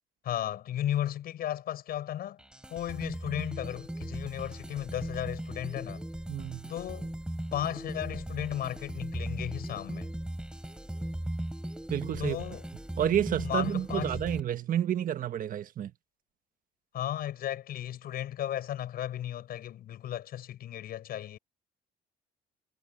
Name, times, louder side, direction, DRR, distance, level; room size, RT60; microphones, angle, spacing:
voice 1, 0.2-2.4 2.7-6.0 6.7-7.1 7.5-10.1 12.2-12.7 13.4-14.2 16.9-21.4, left 11 dB, 65° left, 7.4 m, -35 dB
sound 1, 2.4-14.4, right 1 dB, 5° right, 4.6 m, -38 dB
voice 2, 6.3-6.7 11.9-12.4 13.0-15.9, right 10 dB, 55° right, 1.6 m, -30 dB
cardioid pair, 110°, 17 cm